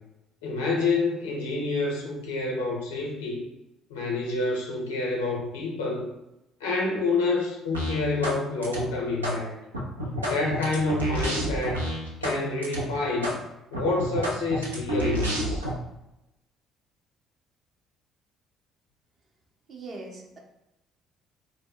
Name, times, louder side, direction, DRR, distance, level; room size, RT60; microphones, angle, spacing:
voice 1, 0.4-3.4 3.9-6.1 6.6-9.5 10.2-11.8 12.2-13.4 13.7-15.7, left 3 dB, 80° left, -2 dB, 0.7 m, -28 dB
sound 1, 7.7-8.4 8.6-9.4 9.7-12.4 12.6-12.8 13.2-13.4 13.7-15.7, right 1 dB, 90° right, 0.4 m, -29 dB
voice 2, 19.7-20.4, right 3 dB, 50° right, 0 dB, 0.7 m, -40 dB
2.1 x 2.1 x 3.6 m, 0.91 s
hypercardioid pair, 50°, 0 cm